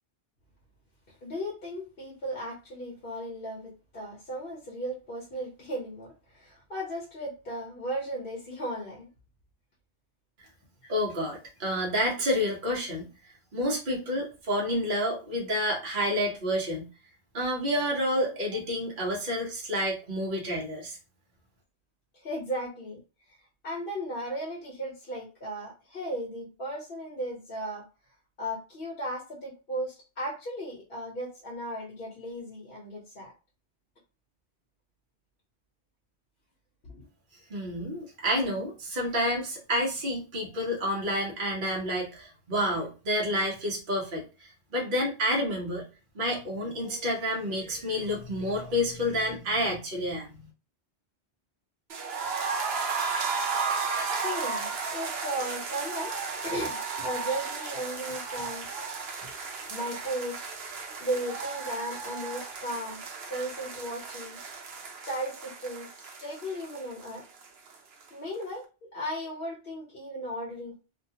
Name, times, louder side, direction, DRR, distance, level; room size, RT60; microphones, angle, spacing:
voice 1, 1.1-9.1 10.8-10.9 22.1-23.0 23.6-27.8 28.4-33.3 36.9-37.0 54.1-56.2 56.4-58.7 59.7-60.4 60.7-64.4 65.0-67.2 68.1-70.8, right 1 dB, 60° left, -3 dB, 1.0 m, -36 dB
voice 2, 10.9-13.1 13.5-16.9 17.3-21.0 37.5-45.9 46.1-50.4, equal, 50° right, -2 dB, 1.1 m, -29 dB
sound 1, 51.9-67.7 68.0-68.1 68.4-68.5, right 5 dB, 70° right, 0.9 m, -34 dB
2.9 x 2.3 x 2.8 m, 0.32 s
omnidirectional pair, 1.1 m